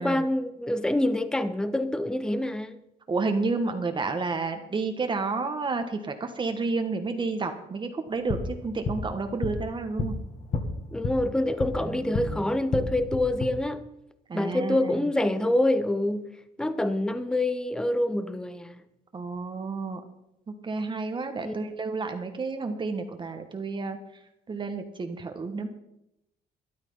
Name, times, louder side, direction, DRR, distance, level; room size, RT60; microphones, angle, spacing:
voice 1, 0.0-2.8 10.9-13.9 14.3-16.3 16.6-18.8 21.4-21.5, left 1 dB, 5° left, 0.8 m, -26 dB
voice 2, 3.1-10.1 11.8-12.4 14.3-15.0 19.1-20.0 20.5-24.0 24.5-25.7, right 3 dB, 30° right, 1.4 m, -30 dB
sound 1, 8.1-12.3 12.6-13.5, left 3 dB, 45° left, 2.1 m, -32 dB
13.0 x 11.0 x 5.6 m
cardioid pair, 110°, 17 cm